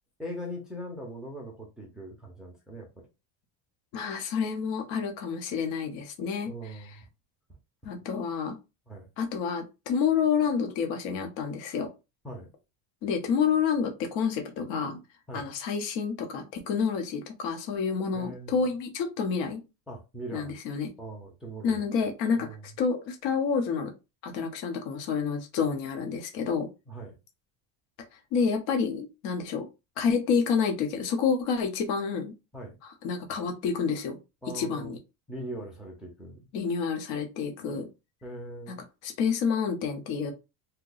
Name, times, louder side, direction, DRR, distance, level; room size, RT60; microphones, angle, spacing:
voice 1, 0.2-3.1 6.5-7.1 8.9-9.1 12.2-12.5 15.3-15.5 18.1-18.7 19.9-20.6 21.0-21.8 22.4-22.6 26.9-27.2 32.5-32.8 34.4-34.9 35.3-36.5 38.2-38.8, right 1 dB, ahead, 0.4 m, -40 dB
voice 2, 3.9-6.5 7.8-8.6 9.2-11.9 13.0-15.0 15.3-19.6 20.3-20.9 21.6-23.9 24.2-26.7 28.3-29.7 30.0-32.3 33.0-34.2 34.5-35.0 36.5-37.9 38.7-38.8 39.0-40.3, left 6 dB, 60° left, 0.9 m, -29 dB
2.8 x 2.2 x 3.8 m
cardioid pair, 155°, 50 cm